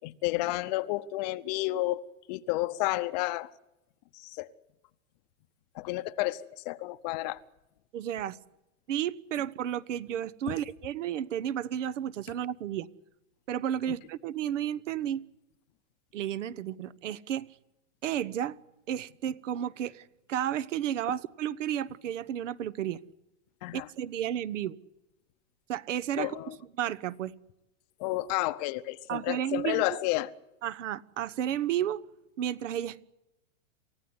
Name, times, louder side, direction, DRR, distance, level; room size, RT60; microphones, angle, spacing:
voice 1, 0.0-2.0 2.3-3.5 4.1-4.5 5.7-7.4 10.5-10.6 13.9-14.0 23.6-23.9 26.2-26.6 28.0-30.3, left 18 dB, 35° left, 0.8 m, -31 dB
voice 2, 7.9-8.4 8.9-12.9 13.5-15.2 16.1-17.5 18.0-18.6 18.9-23.0 23.7-24.8 25.7-26.3 26.8-27.3 29.1-30.0 30.6-32.1 32.4-33.0, right 10 dB, 70° right, 1.2 m, -32 dB
28.5 x 15.5 x 9.7 m
supercardioid pair, 160°, 38 cm